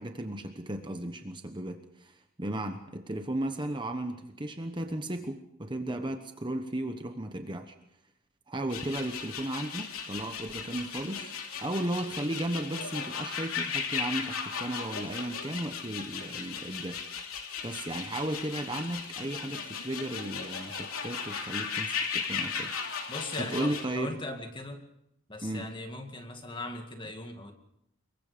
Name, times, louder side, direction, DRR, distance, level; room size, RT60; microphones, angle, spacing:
voice 1, 0.0-7.7 8.5-11.3 11.6-17.0 17.6-22.7 23.0-23.1 23.4-24.1 25.4-25.7, right 1 dB, 20° right, 6 dB, 1.1 m, -35 dB
sound 1, 8.7-23.9, left 6 dB, 70° left, 3.1 m, -36 dB
voice 2, 23.1-24.9 25.3-27.5, left 2 dB, 20° left, 5 dB, 2.2 m, -39 dB
26.0 x 22.5 x 5.2 m, 0.80 s
head